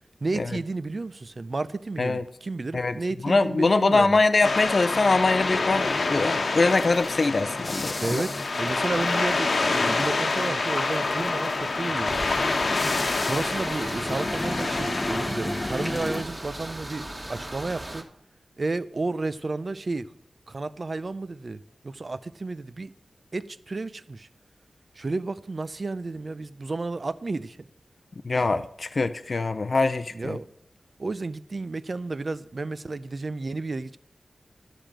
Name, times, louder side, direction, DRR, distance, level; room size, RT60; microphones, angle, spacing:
voice 1, 0.2-4.2 8.0-12.2 13.2-18.0 18.6-20.1 20.5-22.9 23.3-24.3 25.0-27.7 30.1-30.5 31.0-34.0, right 3 dB, 50° right, 0.5 m, -32 dB
voice 2, 3.2-8.2 28.2-30.4, left 3 dB, 55° left, 0.5 m, -23 dB
sound 1, 4.4-15.3, left 3 dB, 70° left, 1.1 m, -27 dB
sound 2, 4.4-16.2, left 2 dB, 30° left, 0.9 m, -36 dB
sound 3, 12.0-18.0, right 1 dB, 25° right, 1.6 m, -36 dB
12.5 x 5.1 x 7.4 m
wide cardioid pair, 85°, 0 cm